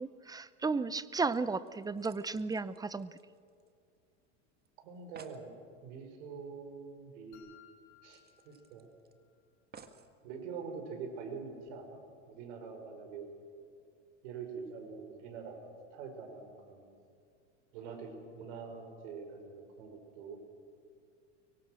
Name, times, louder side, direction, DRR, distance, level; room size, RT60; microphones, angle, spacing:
voice 1, 0.0-3.1, right 4 dB, 10° right, 16 dB, 0.8 m, -34 dB
sound 1, 1.3-4.0 4.2-4.3 4.6-4.7 4.9-5.5 7.0-7.1 7.4-7.5 8.1-9.1 9.7-10.1 10.9-11.0, right 6 dB, 25° right, 1.7 m, -57 dB
voice 2, 4.8-5.5 5.8-7.5 8.0-8.9 10.2-12.0 12.3-13.3 14.2-17.0 17.7-20.4, right 5 dB, 70° right, 5 dB, 5.5 m, -45 dB
sound 2, 7.3-9.3, left 11 dB, 55° left, 3.5 m, -62 dB
24.0 x 23.5 x 6.4 m, 2.4 s
supercardioid pair, 115°, 36 cm